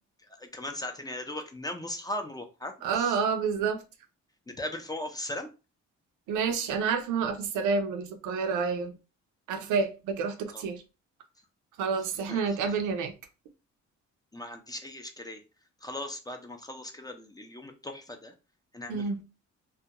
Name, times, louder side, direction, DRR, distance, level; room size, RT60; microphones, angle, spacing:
voice 1, 0.2-3.2 4.5-5.5 10.5-10.6 12.3-12.4 14.3-15.4 15.8-18.3 18.7-19.1, left 1 dB, 15° left, 0.4 m, -38 dB
voice 2, 2.8-3.8 6.3-8.9 9.5-10.8 11.8-13.1 18.9-19.2, right 5 dB, 85° right, 0.5 m, -29 dB
2.3 x 2.2 x 2.8 m
cardioid pair, 90°, 30 cm